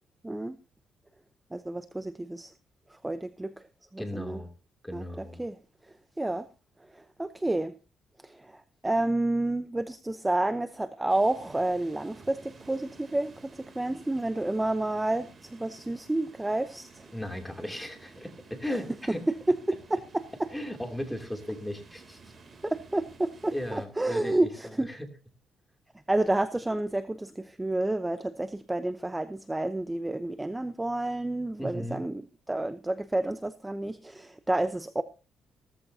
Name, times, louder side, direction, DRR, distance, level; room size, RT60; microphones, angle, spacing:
voice 1, 0.2-0.6 1.5-2.5 2.9-3.7 3.9-4.4 4.9-5.6 6.2-6.5 6.8-7.7 8.2-17.1 19.5-20.5 22.6-24.9 26.1-32.2 32.5-35.0, right 2 dB, 10° right, 0.8 m, -30 dB
voice 2, 4.0-4.5 4.8-5.4 17.1-19.2 20.5-22.2 23.5-24.5 24.9-25.1 31.6-32.0, left 1 dB, 5° left, 2.8 m, -36 dB
sound 1, 11.1-23.9, right 4 dB, 40° right, 3.0 m, -53 dB
16.5 x 14.0 x 2.8 m
cardioid pair, 90°, 0 cm